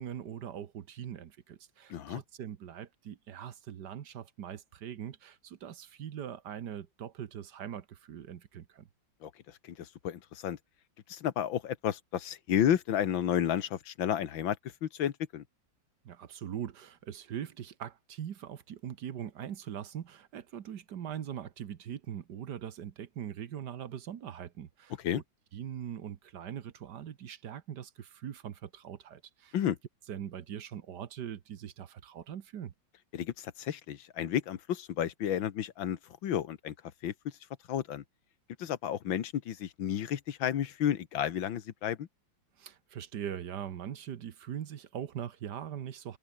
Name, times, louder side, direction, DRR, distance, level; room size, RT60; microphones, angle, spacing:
voice 1, 0.0-8.9 16.0-24.9 25.5-29.5 30.1-32.7 42.6-46.2, right 9 dB, 65° right, 1.7 m, -41 dB
voice 2, 1.9-2.2 9.2-9.3 9.6-10.6 11.1-14.6 14.8-15.4 25.0-25.2 29.5-29.8 33.1-36.7 37.0-37.1 37.7-38.0 38.6-42.1, left 10 dB, 85° left, 2.0 m, -32 dB
omnidirectional pair, 2.0 m